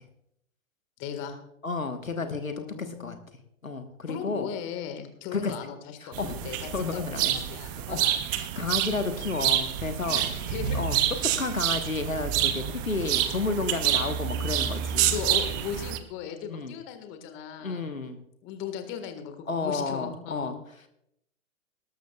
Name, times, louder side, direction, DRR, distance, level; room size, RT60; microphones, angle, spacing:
voice 1, 1.0-1.4 2.1-3.2 4.1-8.2 10.1-10.8 11.1-11.3 13.6-14.0 15.1-17.8 18.4-20.5, left 8 dB, 30° left, 7 dB, 1.7 m, -38 dB
voice 2, 1.6-3.2 3.6-4.5 5.3-5.5 6.0-7.3 7.7-10.2 10.7-11.0 11.4-15.2 16.4-16.8 17.6-18.2 19.5-20.5, left 3 dB, 90° left, 8 dB, 1.4 m, -32 dB
sound 1, 6.1-16.0, right 11 dB, 15° right, 0.4 m, -28 dB
19.0 x 12.5 x 2.4 m, 0.76 s
figure-of-eight pair, 115°, 40 cm